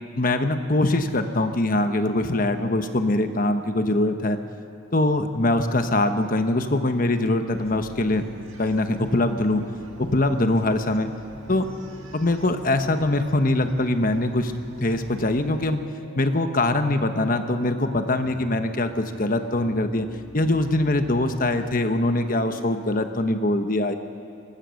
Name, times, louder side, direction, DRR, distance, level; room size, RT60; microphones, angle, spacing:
voice 1, 0.1-4.4 4.9-8.2 8.6-9.6 10.0-11.1 11.5-11.7 12.1-14.5 14.8-15.8 16.2-20.1 20.3-23.9, left 2 dB, 40° left, 8 dB, 1.1 m, -23 dB
Slow Spooky Synth, 7.2-23.3, right 1 dB, 90° left, 3.7 m, -46 dB
Bark, 7.5-15.7, right 1 dB, 80° right, 1.7 m, -46 dB
26.0 x 15.5 x 6.5 m, 2.4 s
head